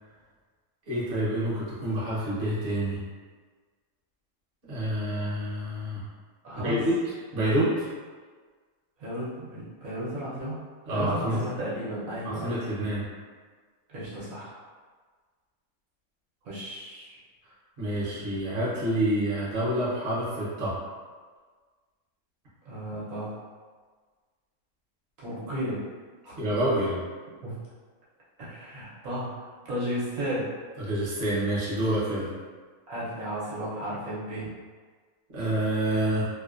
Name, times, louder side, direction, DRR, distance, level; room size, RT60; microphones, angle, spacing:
voice 1, 0.9-3.0 4.7-6.0 6.6-7.9 10.9-11.4 12.2-13.0 17.8-20.7 26.4-27.0 30.8-32.3 35.3-36.3, right 1 dB, 50° right, -8 dB, 0.9 m, -27 dB
voice 2, 6.4-6.8 9.0-10.6 10.9-12.6 13.9-14.5 16.4-17.2 22.7-23.4 25.2-25.8 26.2-26.4 27.4-27.6 28.4-30.5 32.9-34.5 35.9-36.1, equal, 70° right, -8 dB, 1.1 m, -34 dB
2.8 x 2.1 x 2.3 m, 1.5 s
omnidirectional pair, 1.5 m